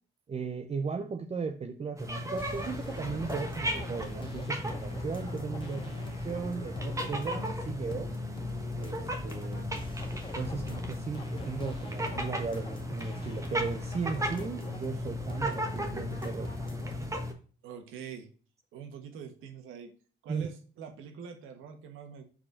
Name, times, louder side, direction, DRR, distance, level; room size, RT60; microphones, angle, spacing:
voice 1, 0.3-8.1 8.8-9.7 10.3-16.5 20.3-20.5, right 5 dB, 30° right, 5 dB, 0.7 m, -36 dB
sound 1, 2.0-17.3, equal, 15° right, 1.2 m, -36 dB
sound 2, 2.4-17.1, left 2 dB, 25° left, 1.4 m, -44 dB
voice 2, 17.6-18.3 18.7-19.9 20.2-22.2, right 7 dB, 90° right, 6 dB, 1.3 m, -44 dB
5.2 x 4.3 x 5.8 m, 0.40 s
cardioid pair, 90°, 20 cm